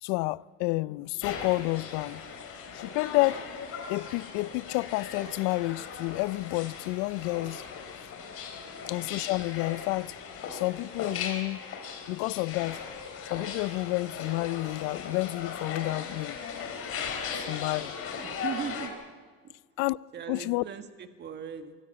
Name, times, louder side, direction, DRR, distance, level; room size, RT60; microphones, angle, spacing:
voice 1, 0.0-2.2 2.7-3.4 3.9-8.1 8.9-10.1 10.5-11.6 12.1-12.8 13.3-16.4 17.4-17.9 19.8-20.0 20.3-20.6, left 22 dB, 70° left, 0.5 m, -30 dB
sound 1, 1.2-18.9, left 6 dB, 50° left, 4.4 m, -38 dB
voice 2, 18.2-18.9 19.4-19.5 20.1-21.8, right 7 dB, 35° right, 1.8 m, -39 dB
23.5 x 14.5 x 8.6 m
supercardioid pair, 115°, 30 cm